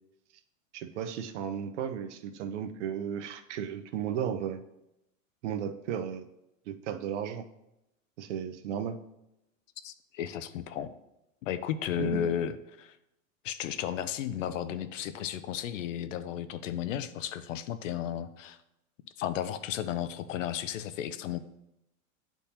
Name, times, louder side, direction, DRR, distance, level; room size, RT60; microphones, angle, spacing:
voice 1, 0.7-4.6 5.4-6.3 6.7-7.5 8.2-9.0 12.0-12.3, right 8 dB, 60° right, 9 dB, 0.7 m, -34 dB
voice 2, 9.8-10.9 11.4-13.0 13.4-18.6 19.2-21.4, left 10 dB, 70° left, 12 dB, 0.6 m, -34 dB
10.0 x 3.5 x 2.8 m, 0.87 s
supercardioid pair, 155°, 41 cm